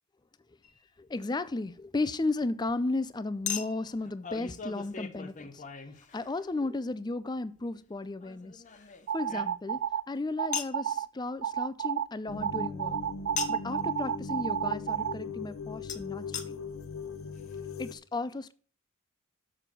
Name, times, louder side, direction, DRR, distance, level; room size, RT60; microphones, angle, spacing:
Chink clink, 0.6-0.8 3.5-6.6 8.2-9.9 10.5-10.8 13.4-13.7 15.9-16.0 16.3-16.5 17.1-17.2 17.4-17.5, left 7 dB, 35° left, 0.9 m, -39 dB
voice 1, 1.0-5.6 6.1-8.6 9.1-13.0 13.5-16.6 17.8-18.5, left 2 dB, 20° left, 0.4 m, -34 dB
sound 1, 9.1-10.0 10.4-11.1 11.4-12.0 12.4-15.1, right 9 dB, 65° right, 0.3 m, -31 dB
sound 2, 12.3-17.9, left 5 dB, 70° left, 0.8 m, -39 dB
7.0 x 6.2 x 5.9 m
head